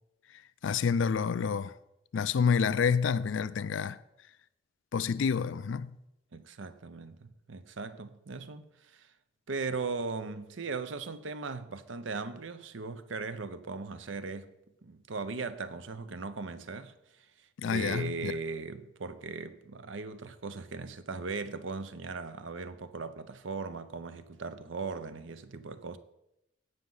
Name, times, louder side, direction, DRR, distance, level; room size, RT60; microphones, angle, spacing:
voice 1, 0.6-1.7 2.1-4.0 4.9-6.0 17.6-18.3, left 6 dB, 70° left, 0.4 m, -28 dB
voice 2, 6.3-9.1 9.5-14.5 14.8-16.9 17.6-26.0, right 4 dB, 70° right, 0.7 m, -38 dB
17.0 x 6.0 x 3.9 m
head